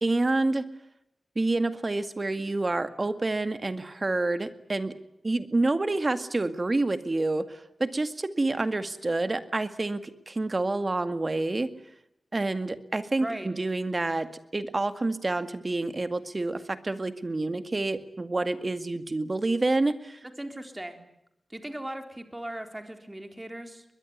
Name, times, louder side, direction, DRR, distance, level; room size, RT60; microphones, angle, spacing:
voice 1, 0.0-0.7 1.4-5.0 5.2-11.7 12.3-14.3 14.5-20.2, right 2 dB, 35° right, 10 dB, 2.0 m, -28 dB
voice 2, 13.2-13.5 20.2-21.0 21.5-23.8, right 1 dB, 15° right, 6 dB, 3.8 m, -38 dB
22.5 x 21.5 x 9.6 m, 0.81 s
wide cardioid pair, 75°, 0 cm